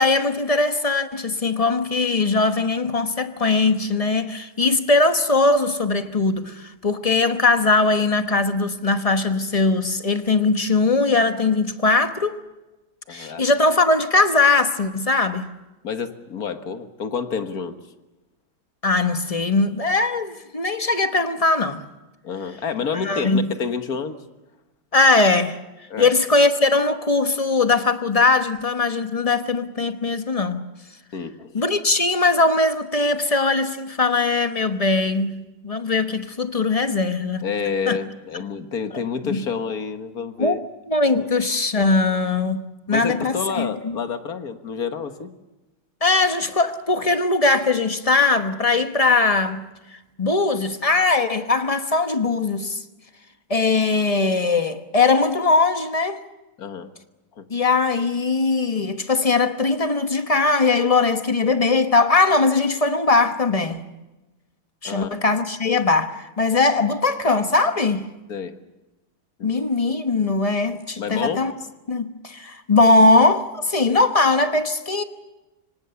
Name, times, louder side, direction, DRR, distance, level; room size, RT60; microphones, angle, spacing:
voice 1, 0.0-12.4 13.1-15.5 18.8-21.8 23.0-23.5 24.9-25.6 26.0-30.7 31.5-37.5 37.9-38.0 39.2-39.5 40.4-42.6 42.9-44.0 46.0-49.7 50.2-52.8 53.5-56.2 57.5-63.8 64.8-68.0 69.4-71.5 71.9-75.0, left 3 dB, 30° left, 0.6 m, -20 dB
voice 2, 13.1-13.5 15.8-17.8 22.2-24.2 25.9-26.1 31.1-31.6 37.4-40.6 41.1-41.3 42.9-45.3 56.6-56.9 57.4-57.5 64.8-65.2 68.3-68.6 69.4-69.5 71.0-71.4, left 6 dB, 45° left, 1.7 m, -29 dB
26.0 x 25.0 x 6.9 m
omnidirectional pair, 2.4 m